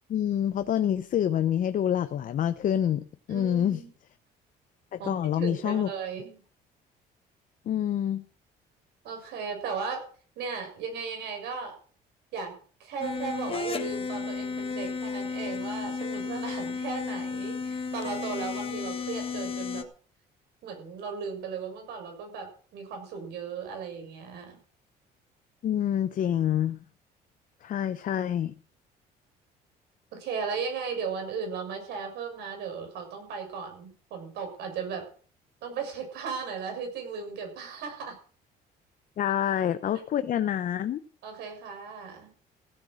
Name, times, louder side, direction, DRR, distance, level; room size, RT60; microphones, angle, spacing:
voice 1, 0.1-3.8 4.9-5.9 7.7-8.2 25.6-26.8 27.6-28.5 39.2-41.0, left 10 dB, 50° left, 11 dB, 0.8 m, -27 dB
voice 2, 3.3-3.9 5.0-6.4 9.0-10.0 10.3-11.8 12.3-12.5 12.8-19.8 20.6-24.6 30.1-35.1 35.6-38.2 41.2-42.3, right 5 dB, 80° right, 4 dB, 6.9 m, -36 dB
sound 1, 13.0-19.8, left 5 dB, 35° left, 1.5 m, -33 dB
16.5 x 8.2 x 6.4 m, 0.42 s
cardioid pair, 110°, 17 cm